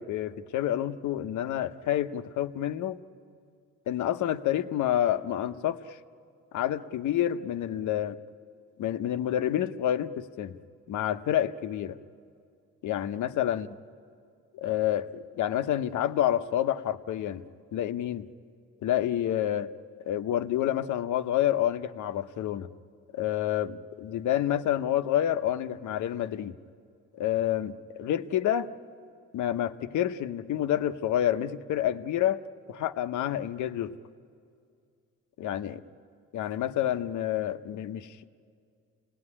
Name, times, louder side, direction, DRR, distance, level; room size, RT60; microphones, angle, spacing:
voice 1, 0.0-3.0 3.9-6.0 6.5-8.2 8.8-10.6 10.9-12.0 12.8-13.7 14.5-17.4 17.7-18.3 18.8-19.7 20.1-22.7 23.1-26.6 27.1-28.7 29.3-32.4 32.7-33.9 35.4-35.8 36.3-38.3, left 11 dB, 75° left, 10 dB, 0.9 m, -28 dB
29.5 x 18.5 x 9.9 m, 2.3 s
cardioid pair, 90°, 30 cm